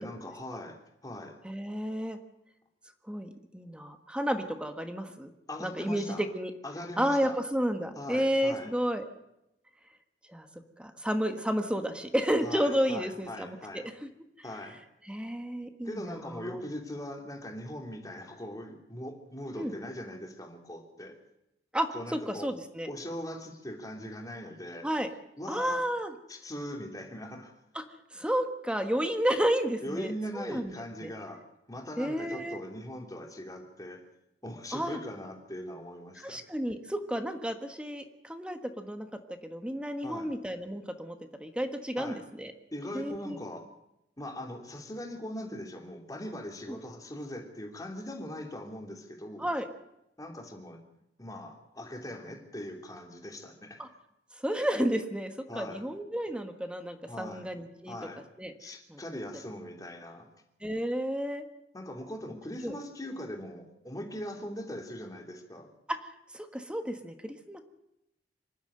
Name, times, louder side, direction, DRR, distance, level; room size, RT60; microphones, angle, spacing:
voice 1, 0.0-1.4 5.5-6.2 6.6-7.4 7.9-8.7 12.4-13.9 14.4-14.8 15.8-21.2 21.9-22.5 22.9-24.9 25.4-25.8 26.3-27.5 29.8-34.0 34.4-36.4 40.0-40.3 42.0-42.2 42.7-43.7 44.2-49.5 50.2-50.8 51.2-53.8 55.5-55.8 57.1-57.5 57.9-58.2 58.6-60.3 61.7-65.7, left 1 dB, 20° left, 2 dB, 3.1 m, -40 dB
voice 2, 1.4-2.2 3.1-5.3 5.6-6.5 7.0-9.0 10.3-10.5 10.8-14.1 15.0-16.6 19.6-19.7 21.7-22.9 24.8-25.1 25.5-26.1 27.7-27.8 28.1-30.7 31.0-31.1 32.0-32.6 34.7-35.0 36.2-39.1 39.4-42.5 42.9-43.4 46.7-46.8 49.4-49.7 53.8-53.9 54.4-57.9 58.4-58.5 58.9-59.0 60.6-61.4 62.6-62.8 65.9-66.0 66.3-67.6, equal, 5° right, 7 dB, 1.4 m, -31 dB
26.0 x 11.5 x 8.8 m, 0.85 s
head